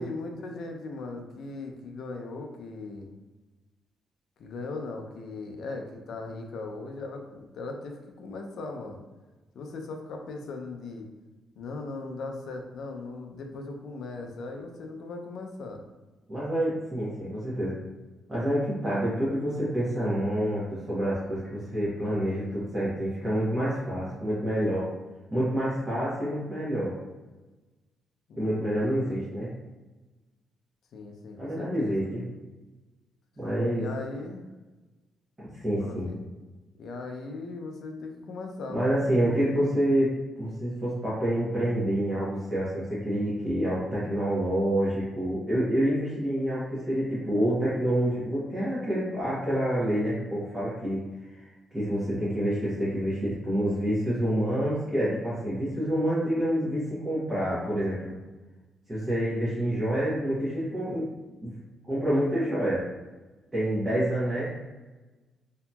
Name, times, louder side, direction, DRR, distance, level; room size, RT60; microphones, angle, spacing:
voice 1, 0.0-3.1 4.4-9.0 9.5-11.1 11.6-15.8 28.3-29.3 30.9-32.1 33.8-34.5 35.8-36.2 36.8-38.9 39.6-39.7, left 3 dB, 65° left, 3 dB, 0.4 m, -38 dB
voice 2, 16.3-17.8 18.3-24.9 25.3-26.9 28.4-29.5 31.4-32.2 33.4-33.9 35.4-36.1 38.7-40.1 40.4-51.0 51.3-51.4 51.7-58.2 58.9-61.1 61.4-61.5 61.9-62.9 63.5-64.4, equal, 20° right, -11 dB, 1.0 m, -27 dB
2.7 x 2.7 x 2.3 m, 1.2 s
cardioid pair, 105°, 0 cm